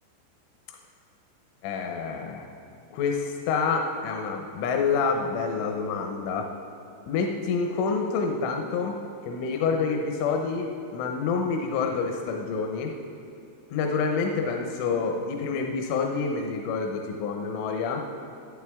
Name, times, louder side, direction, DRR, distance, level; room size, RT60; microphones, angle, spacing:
voice 1, 1.6-2.5 2.9-6.5 7.1-9.0 9.2-12.9 13.7-18.0, left 5 dB, 85° left, 2 dB, 3.4 m, -27 dB
23.5 x 9.0 x 3.6 m, 2.7 s
omnidirectional pair, 5.5 m